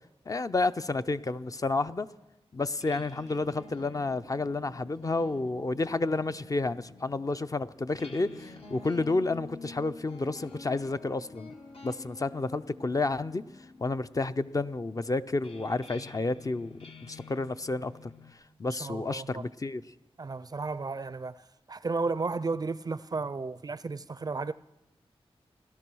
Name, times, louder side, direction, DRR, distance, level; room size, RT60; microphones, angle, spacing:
voice 1, 0.3-2.1 2.5-11.5 11.8-13.4 13.8-16.7 17.0-18.1 18.6-19.8, left 3 dB, 35° left, 0.5 m, -30 dB
sound 1, 2.6-18.3, left 3 dB, 70° left, 1.6 m, -49 dB
voice 2, 18.7-19.5 20.2-24.5, right 4 dB, 40° right, 0.4 m, -33 dB
16.5 x 12.5 x 6.2 m
wide cardioid pair, 85°, 10 cm